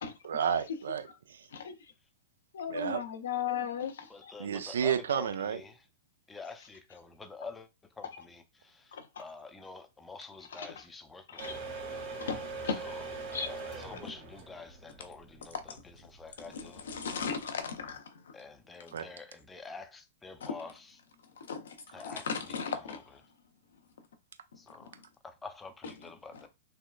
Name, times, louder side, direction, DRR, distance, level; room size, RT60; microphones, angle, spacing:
voice 1, 0.2-1.5 2.7-3.0 4.4-5.6 18.9-19.1, right 8 dB, 70° right, 0.5 m, -31 dB
voice 2, 1.5-1.9 2.5-4.3 8.9-9.1 10.5-10.7 11.3-11.6 12.3-12.4 12.6-12.7 13.3-13.5 16.5-18.4 20.4-20.5 21.4-23.0, left 6 dB, 70° left, 0.6 m, -36 dB
voice 3, 4.1-5.9 6.3-11.7 12.7-13.0 13.4-16.9 18.3-21.0 21.9-23.0 24.6-26.5, left 4 dB, 15° left, 0.5 m, -48 dB
sound 1, 11.4-18.0, right 3 dB, 50° right, 1.5 m, -42 dB
3.5 x 2.2 x 2.3 m
figure-of-eight pair, 105°, 0 cm